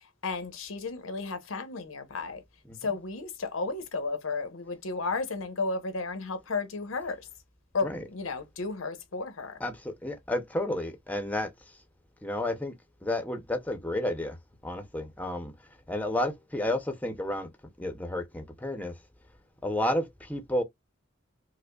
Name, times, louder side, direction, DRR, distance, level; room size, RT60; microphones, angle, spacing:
voice 1, 0.2-2.4 2.8-7.3 7.7-9.6, left 3 dB, 90° left, 0.8 m, -33 dB
voice 2, 9.6-11.5 12.2-12.7 13.0-14.4 14.6-15.5 15.9-17.5 17.8-18.9 19.6-20.6, left 1 dB, 10° left, 0.6 m, -31 dB
4.8 x 2.1 x 2.3 m
head